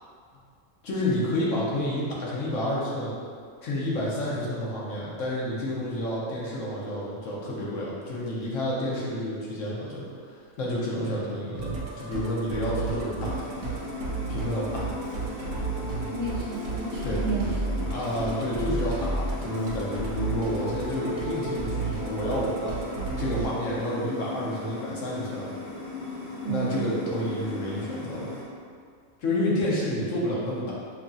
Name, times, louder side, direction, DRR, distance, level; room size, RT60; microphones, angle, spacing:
voice 1, 0.8-3.1 3.6-13.3 14.3-14.9 17.0-17.2 17.9-22.7 23.2-25.4 26.5-28.3 29.2-30.7, left 1 dB, 65° left, -6 dB, 1.3 m, -29 dB
Musical instrument, 11.5-23.5, right 3 dB, 90° right, 1.1 m, -32 dB
sound 1, 13.2-28.4, left 3 dB, 85° left, 1.3 m, -38 dB
voice 2, 15.9-17.5 26.4-27.0, right 4 dB, 45° right, -7 dB, 0.8 m, -31 dB
5.7 x 2.3 x 2.6 m, 2.2 s
omnidirectional pair, 1.4 m